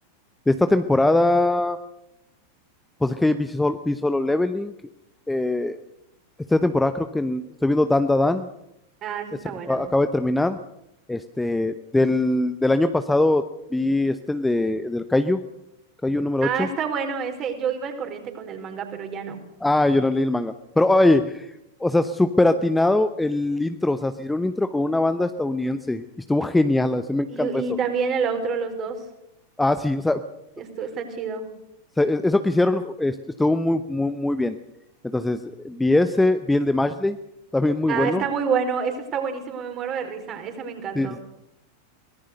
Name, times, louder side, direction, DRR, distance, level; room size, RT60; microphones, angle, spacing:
voice 1, 0.5-1.8 3.0-4.7 5.3-5.8 6.5-8.5 9.7-10.6 11.1-13.5 13.7-15.4 16.0-16.7 19.6-21.5 21.8-27.6 29.6-30.2 32.0-34.6 35.0-37.2 37.5-38.2 40.9-41.2, left 2 dB, 5° left, 10 dB, 0.9 m, -22 dB
voice 2, 9.0-9.8 16.4-19.4 27.3-29.0 30.6-31.5 37.9-41.2, right 6 dB, 30° right, 6 dB, 4.5 m, -28 dB
23.5 x 19.0 x 6.7 m, 0.83 s
figure-of-eight pair, 90°, 0 cm